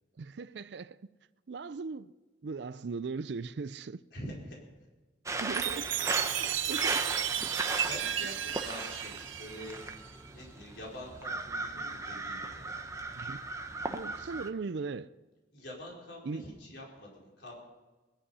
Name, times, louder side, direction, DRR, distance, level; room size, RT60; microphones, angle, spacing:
voice 1, 0.2-1.0 1.5-2.1 2.4-4.0 5.4-5.9 6.4-7.0 13.2-13.4 13.8-15.1 16.2-16.4, right 4 dB, 60° right, 0.4 m, -38 dB
voice 2, 4.1-4.6 7.8-9.8 10.3-12.8 15.5-17.7, equal, 60° left, 4.5 m, -45 dB
sound 1, 5.3-14.5, right 3 dB, 15° right, 0.9 m, -37 dB
Chime, 5.5-10.2, right 10 dB, 90° right, 0.9 m, -34 dB
21.0 x 11.5 x 5.5 m
head